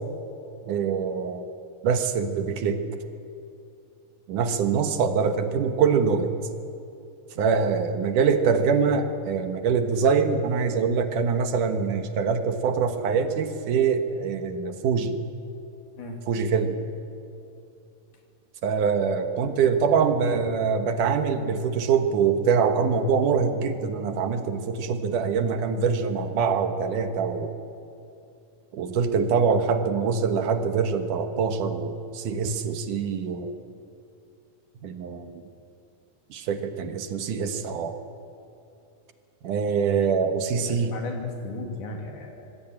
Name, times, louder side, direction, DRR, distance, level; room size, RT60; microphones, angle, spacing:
voice 1, 0.7-1.4 1.8-2.8 4.3-6.3 7.4-15.2 16.3-16.8 18.6-27.6 28.7-33.5 34.8-35.4 36.3-38.0 39.4-41.0, right 6 dB, 75° right, 7 dB, 2.9 m, -24 dB
voice 2, 40.7-42.5, left 2 dB, 70° left, 2 dB, 4.3 m, -36 dB
26.0 x 19.0 x 8.8 m, 2.7 s
omnidirectional pair, 3.7 m